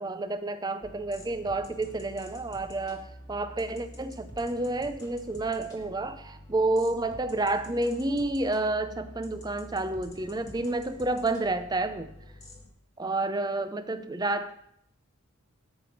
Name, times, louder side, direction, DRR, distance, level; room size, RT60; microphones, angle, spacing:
voice 1, 0.0-12.1 13.0-14.6, right 2 dB, 20° right, 10 dB, 0.5 m, -30 dB
sound 1, 0.8-12.7, equal, 15° left, 1.6 m, -48 dB
12.5 x 5.1 x 5.8 m, 0.76 s
head